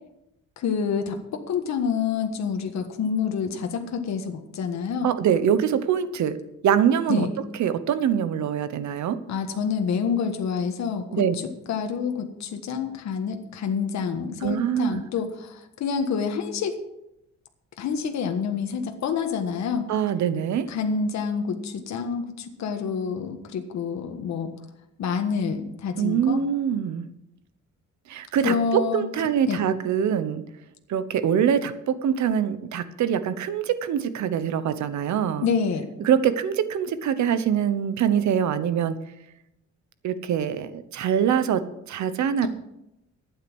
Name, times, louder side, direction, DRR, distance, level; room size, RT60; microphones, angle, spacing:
voice 1, 0.6-5.1 7.1-7.3 9.3-11.2 11.7-16.8 17.8-19.8 20.7-24.5 25.0-26.4 28.4-29.0 29.5-29.6 35.4-35.9, left 6 dB, 65° left, 5 dB, 1.5 m, -27 dB
voice 2, 5.0-6.4 6.6-7.3 7.6-9.2 11.1-11.3 14.4-15.0 19.9-20.7 26.0-27.1 28.1-30.4 30.9-35.5 36.0-39.0 40.0-42.5, right 8 dB, 70° right, 13 dB, 1.1 m, -24 dB
12.0 x 9.6 x 6.2 m, 0.85 s
cardioid pair, 145°, 30 cm